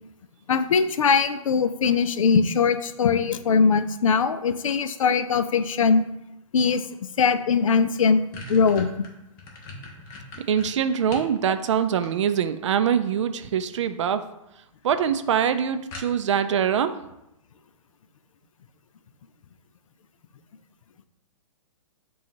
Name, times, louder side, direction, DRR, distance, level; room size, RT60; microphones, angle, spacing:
voice 1, 0.5-6.0 6.5-6.8 7.2-8.2 8.5-9.0, left 5 dB, 70° left, 11 dB, 0.4 m, -21 dB
sound 1, 7.5-7.6 7.9-11.3 11.7-12.6 13.7-14.1 14.5-14.6 14.9-15.0 15.3-15.4 15.9-16.5, left 3 dB, 35° left, 1.0 m, -41 dB
voice 2, 10.5-14.2 14.8-16.9, right 8 dB, 60° right, 10 dB, 0.4 m, -23 dB
6.9 x 2.3 x 2.9 m, 0.88 s
figure-of-eight pair, 120°, 18 cm